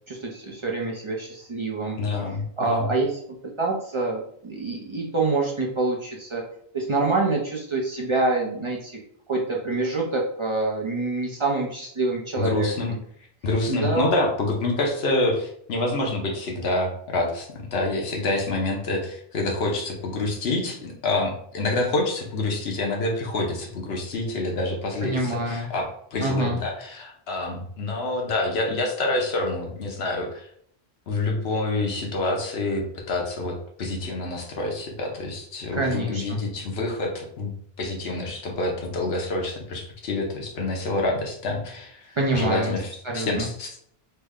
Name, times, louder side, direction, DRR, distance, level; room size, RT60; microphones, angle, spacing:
voice 1, 0.1-2.0 2.6-3.2 3.6-6.4 6.7-9.0 9.3-13.0 13.7-14.1 25.0-25.7 26.2-26.6 35.7-36.4 42.2-42.7 43.0-43.5, right 2 dB, 40° right, -2 dB, 0.4 m, -26 dB
voice 2, 2.0-2.9 12.4-12.9 13.4-30.5 31.1-37.5 37.8-43.7, left 2 dB, 75° left, 1 dB, 1.0 m, -27 dB
3.3 x 2.1 x 3.5 m, 0.66 s
omnidirectional pair, 1.1 m